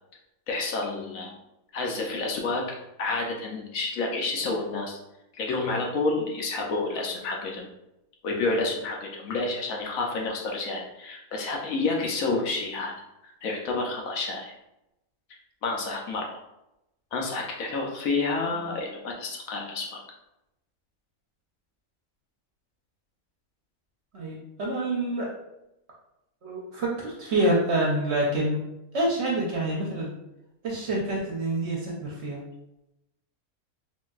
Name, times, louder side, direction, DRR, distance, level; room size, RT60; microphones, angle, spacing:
voice 1, 0.5-1.3 1.7-5.0 5.3-7.7 8.2-12.9 13.2-14.5 15.6-16.3 17.1-20.0, left 3 dB, 70° left, 0 dB, 1.0 m, -29 dB
voice 2, 24.1-25.3 26.4-28.6 28.9-30.1 30.6-32.4, right 1 dB, 60° right, -3 dB, 0.8 m, -27 dB
3.7 x 2.5 x 2.3 m, 0.88 s
omnidirectional pair, 1.6 m